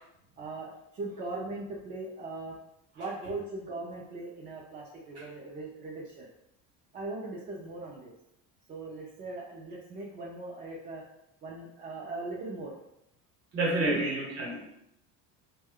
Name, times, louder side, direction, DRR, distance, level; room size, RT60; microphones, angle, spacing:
voice 1, 0.4-2.5 3.0-6.3 6.9-8.1 8.7-11.0 11.4-12.7 13.8-14.0, right 2 dB, 25° right, -4 dB, 0.4 m, -39 dB
voice 2, 13.5-14.7, right 2 dB, 45° right, -1 dB, 0.9 m, -29 dB
3.5 x 2.2 x 3.5 m, 0.78 s
cardioid pair, 180°, 34 cm